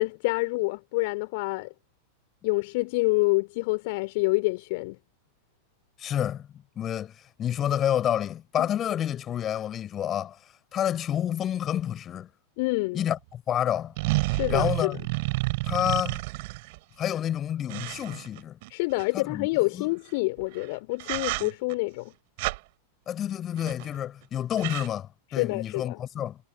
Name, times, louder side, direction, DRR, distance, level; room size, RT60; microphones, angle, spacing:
voice 1, 0.0-1.7 2.4-5.0 8.6-8.7 12.6-13.0 14.3-15.0 18.7-22.1 25.3-26.0, left 25 dB, 50° left, 3.8 m, -27 dB
voice 2, 6.0-10.4 10.7-12.3 12.9-13.9 14.5-15.0 15.6-16.2 17.0-18.6 19.1-19.5 19.7-19.9 23.1-26.4, left 10 dB, 30° left, 6.0 m, -29 dB
sound 1, 13.0-13.1 14.0-16.8 17.7-19.0 20.4-20.7 21.0-21.7 22.4-22.6 23.6-24.0 24.2-24.3 24.5-24.9, right 24 dB, 50° right, 4.1 m, -30 dB
figure-of-eight pair, 90°, 0 cm